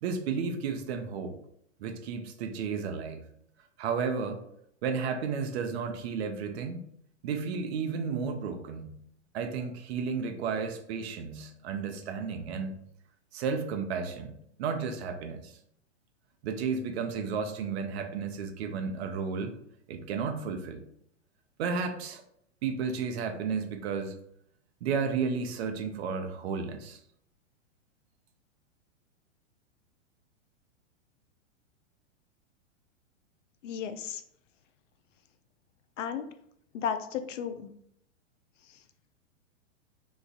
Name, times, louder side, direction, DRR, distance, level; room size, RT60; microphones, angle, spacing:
voice 1, 0.0-1.3 1.8-3.3 3.8-4.4 4.8-6.8 7.2-8.9 9.3-12.7 13.3-15.6 16.4-19.5 19.9-20.8 21.6-22.2 22.6-24.1 24.8-27.0, right 5 dB, 55° right, 7 dB, 0.7 m, -33 dB
voice 2, 33.6-34.2 36.0-36.3 36.7-37.7 38.7-38.8, left 7 dB, 75° left, 9 dB, 0.6 m, -34 dB
3.1 x 2.5 x 3.7 m, 0.71 s
hypercardioid pair, 125°, 38 cm